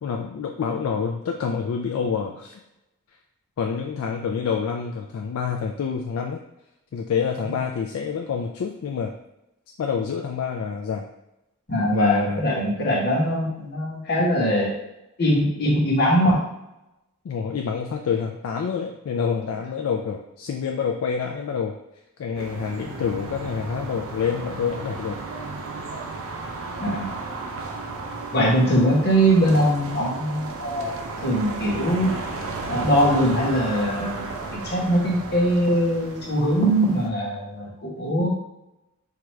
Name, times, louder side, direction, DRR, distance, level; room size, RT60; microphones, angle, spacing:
voice 1, 0.0-2.6 3.6-6.4 6.9-9.1 9.8-11.1 11.9-12.4 17.2-21.7 22.2-25.2, left 6 dB, 65° left, 3 dB, 0.3 m, -27 dB
voice 2, 11.7-14.7 15.2-16.5 26.8-27.1 28.3-30.9 31.2-32.2 32.7-38.3, equal, 50° left, -3 dB, 1.0 m, -21 dB
sound 1, 22.4-37.1, right 3 dB, 65° right, 0.5 m, -34 dB
4.6 x 2.4 x 3.1 m, 0.90 s
head